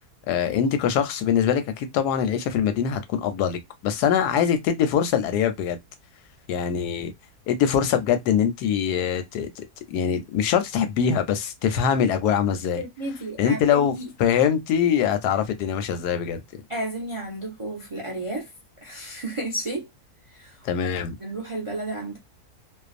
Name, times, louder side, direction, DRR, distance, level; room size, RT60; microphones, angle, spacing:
voice 1, 0.3-5.8 6.5-7.1 7.5-12.8 13.4-13.9 14.2-16.4 20.6-21.1, left 8 dB, 90° left, 1.1 m, -23 dB
voice 2, 12.8-14.1 16.7-18.5 18.8-19.9 20.3-20.6 21.2-22.2, right 1 dB, 55° right, 0.3 m, -32 dB
2.5 x 2.2 x 2.4 m
omnidirectional pair, 1.7 m